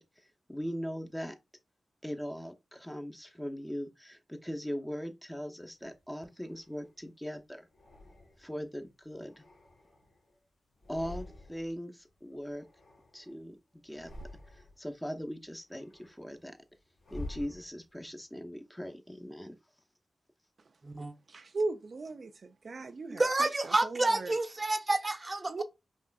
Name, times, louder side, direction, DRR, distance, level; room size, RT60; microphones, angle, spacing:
voice 1, 0.0-1.4 2.0-7.7 8.4-9.4 10.9-12.7 13.1-13.6 13.8-14.1 14.5-16.6 17.1-19.6, equal, 10° left, 0.7 m, -40 dB
sound 1, 5.8-7.0 7.7-8.7 9.1-10.4 10.7-11.8 12.1-13.4 13.8-14.9 15.3-18.1, left 1 dB, 85° left, 1.3 m, -49 dB
voice 2, 21.3-24.4 25.5-25.6, right 3 dB, 65° right, 0.4 m, -38 dB
voice 3, 23.2-25.6, right 2 dB, 35° right, 0.7 m, -29 dB
5.3 x 2.4 x 2.3 m
supercardioid pair, 40°, 0 cm